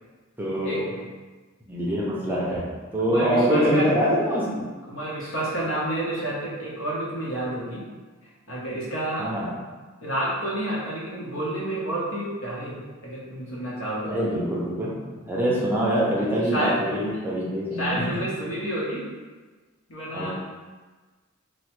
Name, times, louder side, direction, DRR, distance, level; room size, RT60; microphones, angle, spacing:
voice 1, 0.4-0.9 1.7-2.7 2.9-4.6 9.2-9.5 14.1-14.9 15.3-18.1 20.1-20.3, equal, 10° right, -6 dB, 0.5 m, -24 dB
voice 2, 3.0-4.0 4.9-7.8 8.5-9.3 10.0-14.2 16.4-16.8 17.1-17.2 17.8-19.1 19.9-20.3, right 1 dB, 75° left, -5 dB, 0.9 m, -29 dB
3.0 x 2.1 x 3.0 m, 1.3 s
head